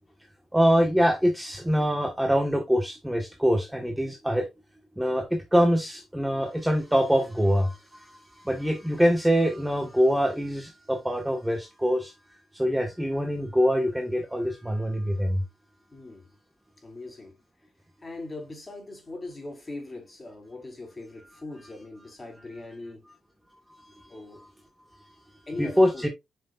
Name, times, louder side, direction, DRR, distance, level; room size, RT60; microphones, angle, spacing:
voice 1, 0.5-4.5 5.0-12.1 12.5-15.4 23.8-24.1 25.6-26.1, equal, 5° right, 1.5 m, -24 dB
voice 2, 15.9-16.3 16.8-17.4 18.0-23.1 24.1-24.4 25.5-26.1, left 2 dB, 25° left, 4.3 m, -40 dB
7.8 x 6.4 x 2.5 m
cardioid pair, 90°, 0 cm